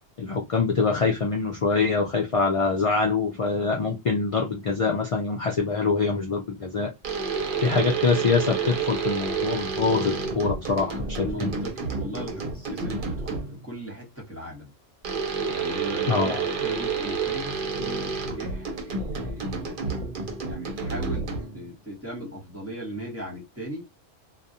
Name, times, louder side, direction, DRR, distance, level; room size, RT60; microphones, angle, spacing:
voice 1, 0.2-6.9 7.6-11.5 16.1-16.4, left 4 dB, 60° left, 0.3 m, -24 dB
sound 1, 7.0-13.6 15.0-21.7, right 4 dB, 55° right, 0.7 m, -30 dB
voice 2, 11.2-14.7 15.5-19.8 20.5-23.9, right 1 dB, 15° right, 0.9 m, -38 dB
2.3 x 2.1 x 2.7 m
omnidirectional pair, 1.2 m